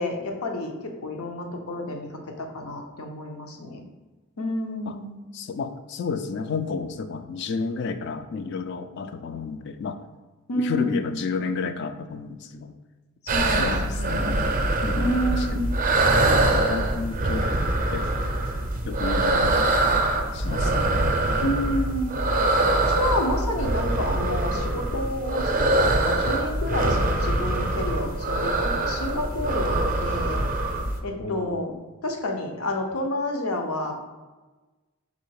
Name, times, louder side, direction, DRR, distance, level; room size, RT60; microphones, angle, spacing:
voice 1, 0.0-3.8 4.4-5.2 10.5-11.1 13.2-14.6 14.9-15.7 21.4-22.1 22.9-30.4 31.0-31.7 32.0-34.0, left 1 dB, 85° left, 3 dB, 0.7 m, -29 dB
voice 2, 5.3-10.0 10.6-12.7 13.5-14.4 14.8-15.8 16.3-18.1 18.8-20.0 20.3-21.2 31.2-31.8, left 5 dB, 55° left, 9 dB, 0.3 m, -32 dB
sound 1, 13.3-31.0, right 2 dB, 40° right, 0.5 m, -24 dB
4.0 x 2.8 x 4.6 m, 1.2 s
head